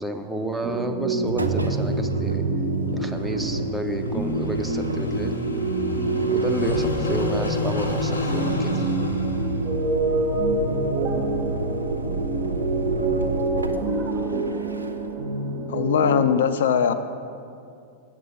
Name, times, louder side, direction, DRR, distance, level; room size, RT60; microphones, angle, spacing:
voice 1, 0.0-2.4 2.9-5.4 6.3-8.9, right 1 dB, 5° right, 5 dB, 0.6 m, -31 dB
sound 1, 0.6-16.3, right 4 dB, 50° right, 0.9 m, -27 dB
Engine, 1.2-15.2, equal, 80° right, 0.5 m, -29 dB
Car passing by / Idling, 2.9-13.6, left 3 dB, 80° left, 0.8 m, -34 dB
voice 2, 15.7-16.9, left 8 dB, 60° left, 10 dB, 0.4 m, -20 dB
7.8 x 7.4 x 5.3 m, 2.4 s
figure-of-eight pair, 90°, 0 cm